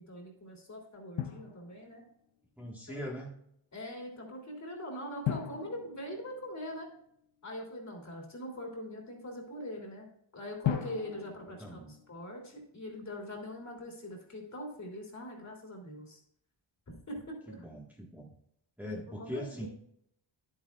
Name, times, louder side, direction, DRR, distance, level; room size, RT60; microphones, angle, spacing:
voice 1, 0.0-2.0 2.9-3.1 3.7-6.9 7.4-10.1 10.3-16.2 16.9-17.6 18.8-19.7, left 1 dB, 35° left, 0 dB, 3.0 m, -42 dB
Drum, 1.2-2.3 5.2-7.1 10.6-12.6, left 10 dB, 70° left, 0.9 m, -38 dB
voice 2, 2.6-3.3 11.6-11.9 17.6-18.3 18.8-19.7, equal, 5° right, -3 dB, 1.5 m, -41 dB
10.0 x 9.2 x 2.4 m, 0.72 s
cardioid pair, 90°, 47 cm